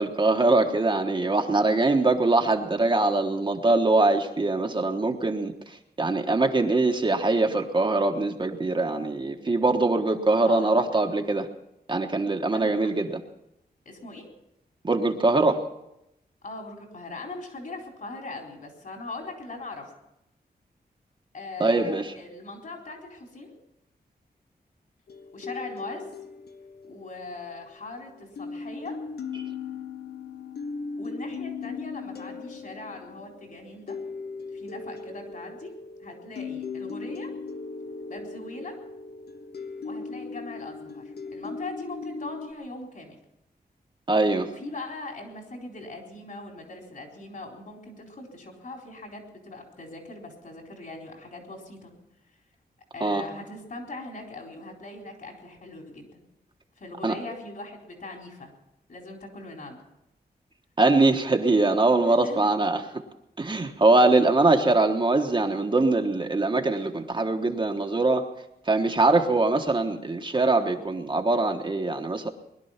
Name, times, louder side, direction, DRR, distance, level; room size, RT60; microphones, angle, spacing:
voice 1, 0.0-5.5 6.0-11.5 11.9-13.2 14.8-15.6 21.6-22.1 44.1-44.5 53.0-53.2 57.0-57.1 60.8-62.8 63.4-68.3 68.7-72.3, right 2 dB, 30° right, 4 dB, 1.2 m, -22 dB
voice 2, 10.4-10.8 12.5-12.9 13.9-14.3 16.4-20.0 21.3-23.5 25.3-26.1 26.8-29.0 31.0-34.0 34.5-35.7 36.0-37.3 38.1-38.8 39.8-43.2 44.4-51.9 52.9-56.2 56.8-58.5 58.9-59.8 62.1-62.4 69.0-69.2, left 2 dB, 55° left, 2 dB, 4.1 m, -40 dB
sound 1, 25.1-27.9 28.4-42.5, left 4 dB, 75° left, 1.0 m, -38 dB
21.0 x 11.5 x 5.7 m, 0.84 s
wide cardioid pair, 125°, 17 cm